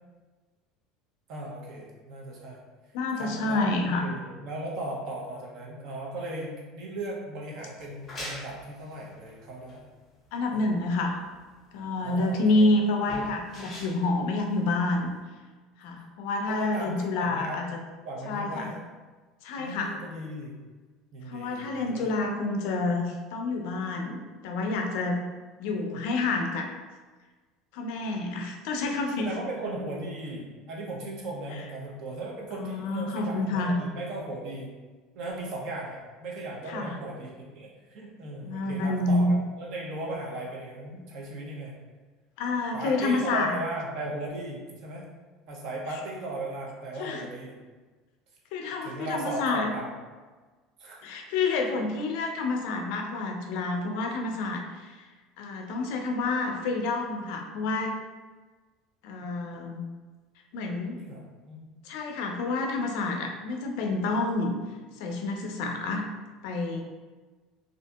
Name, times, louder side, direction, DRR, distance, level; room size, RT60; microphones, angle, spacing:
voice 1, 1.3-2.6 3.1-9.8 10.5-10.6 12.0-13.3 16.5-17.6 18.0-18.8 19.6-20.5 21.1-22.1 29.2-34.7 35.1-41.7 42.7-45.1 45.5-47.6 48.8-49.9 50.8-51.0 59.2-59.3 61.0-61.7, right 2 dB, 45° right, -2 dB, 0.5 m, -37 dB
voice 2, 2.9-4.1 10.3-11.2 11.7-15.1 15.8-17.7 18.3-18.7 19.4-20.0 21.3-25.2 25.6-26.7 27.7-29.3 32.5-33.8 36.7-36.9 38.4-39.3 42.4-43.5 47.0-47.3 48.5-49.7 51.0-55.0 55.4-57.9 59.0-59.8 60.5-61.0 61.8-64.5 65.0-66.1 66.4-66.8, left 2 dB, 65° left, 2 dB, 0.4 m, -28 dB
sound 1, 7.8-15.2, left 1 dB, 20° left, 0.6 m, -44 dB
2.6 x 2.4 x 2.3 m, 1.3 s
cardioid pair, 175°, 0 cm